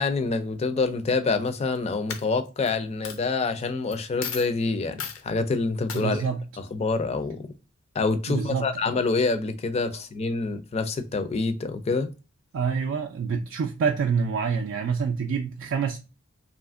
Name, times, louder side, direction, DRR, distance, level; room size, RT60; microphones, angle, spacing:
voice 1, 0.0-6.2 6.6-7.5 8.0-12.1, left 3 dB, 30° left, 0.4 m, -26 dB
Coin (dropping), 1.5-1.8 2.1-2.7 3.0-3.2 3.9-4.0 4.2-4.5 5.0-5.2 5.9-6.0, left 7 dB, 85° left, 0.5 m, -34 dB
voice 2, 5.9-6.4 8.3-8.7 12.5-16.0, right 6 dB, 70° right, 0.3 m, -26 dB
2.7 x 2.4 x 2.3 m
head